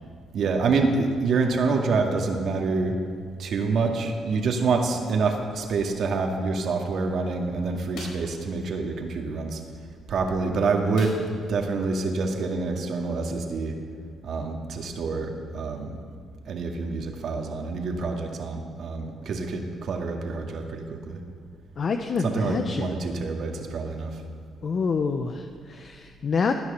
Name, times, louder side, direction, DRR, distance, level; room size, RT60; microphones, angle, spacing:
voice 1, 0.3-3.0 3.4-9.6 10.1-13.8 14.2-16.0 16.5-21.2 22.2-24.2, right 4 dB, 65° right, 2 dB, 2.0 m, -27 dB
sound 1, 7.9-8.4 11.0-11.5 11.9-12.0 12.4-12.6, left 2 dB, 80° left, 4.5 m, -42 dB
voice 2, 21.8-22.9 24.6-26.5, left 5 dB, 50° left, 6 dB, 0.8 m, -27 dB
17.0 x 9.7 x 6.8 m, 2.1 s
cardioid pair, 90°, 0 cm